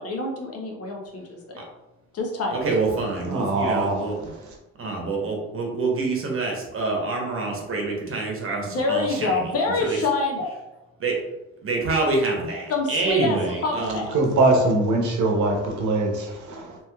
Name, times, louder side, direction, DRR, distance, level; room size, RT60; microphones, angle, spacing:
voice 1, 0.0-1.6 2.1-2.6 8.6-10.5 12.7-14.2, left 3 dB, 55° left, 1 dB, 0.8 m, -26 dB
voice 2, 2.5-4.3 4.8-9.5 9.8-10.0 11.0-11.2 11.6-14.0, right 3 dB, 45° right, 0 dB, 0.9 m, -26 dB
voice 3, 3.2-4.6 14.1-16.8, right 2 dB, 70° right, 1 dB, 0.8 m, -23 dB
3.0 x 3.0 x 2.3 m, 0.97 s
cardioid pair, 90°, 30 cm